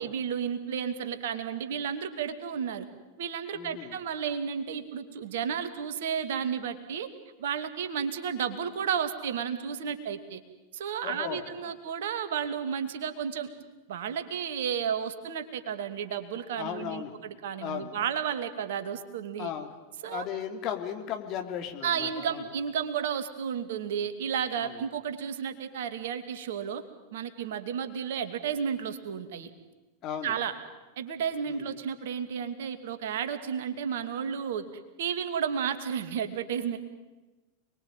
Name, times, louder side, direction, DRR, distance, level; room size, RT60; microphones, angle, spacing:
voice 1, 0.0-2.9 3.2-7.1 7.4-10.4 10.7-13.5 13.9-19.5 20.0-20.3 21.8-26.8 27.1-29.5 30.2-30.5 31.0-34.7 35.0-36.8, right 7 dB, 55° right, 9 dB, 2.5 m, -32 dB
voice 2, 3.5-4.0 11.0-11.7 16.6-17.2 17.6-17.9 19.4-19.7 20.0-22.4 24.6-24.8 30.0-30.4 31.4-31.8, left 9 dB, 35° left, 5 dB, 3.2 m, -36 dB
29.5 x 21.5 x 9.2 m, 1.2 s
figure-of-eight pair, 90°, 0 cm